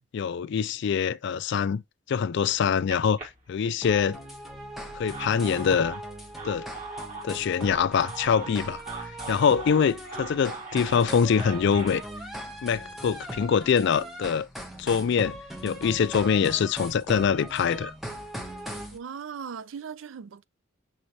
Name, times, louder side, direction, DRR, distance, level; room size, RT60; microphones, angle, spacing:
voice 1, 0.1-1.8 2.1-4.2 4.9-6.0 6.4-6.7 7.2-12.0 12.6-14.5 14.8-15.4 15.6-17.9, left 6 dB, 60° left, 0.3 m, -24 dB
sound 1, 2.5-4.1 4.8-12.0, right 4 dB, 40° right, 2.1 m, -41 dB
sound 2, 3.8-19.0, equal, ahead, 1.0 m, -39 dB
voice 2, 18.9-20.4, right 7 dB, 70° right, 0.4 m, -38 dB
6.1 x 3.2 x 2.7 m
head